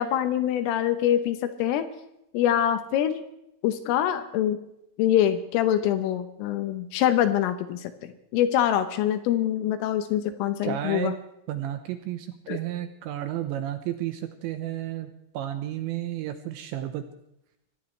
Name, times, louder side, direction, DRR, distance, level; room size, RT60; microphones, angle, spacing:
voice 1, 0.0-1.9 2.3-3.2 3.6-4.6 5.0-7.9 8.3-11.1 12.5-12.6, left 11 dB, 80° left, 9 dB, 3.5 m, -24 dB
voice 2, 10.6-11.1 11.5-17.0, right 12 dB, 80° right, 8 dB, 2.9 m, -32 dB
25.0 x 18.0 x 3.2 m, 0.81 s
omnidirectional pair, 5.9 m